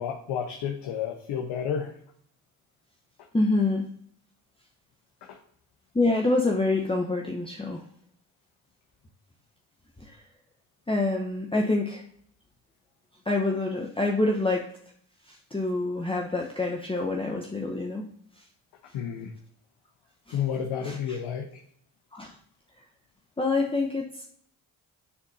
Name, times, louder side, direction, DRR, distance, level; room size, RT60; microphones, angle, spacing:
voice 1, 0.0-1.9 5.2-5.4 18.9-19.3 20.3-21.6, left 8 dB, 75° left, 1 dB, 1.0 m, -31 dB
voice 2, 3.3-3.9 5.9-7.8 10.0-10.2 10.9-12.0 13.3-14.7 15.3-18.4 20.3-20.4 20.8-21.2 22.1-22.3 23.4-24.3, left 2 dB, 10° left, 0 dB, 0.9 m, -27 dB
9.7 x 4.1 x 2.7 m, 0.66 s
hypercardioid pair, 50°, 43 cm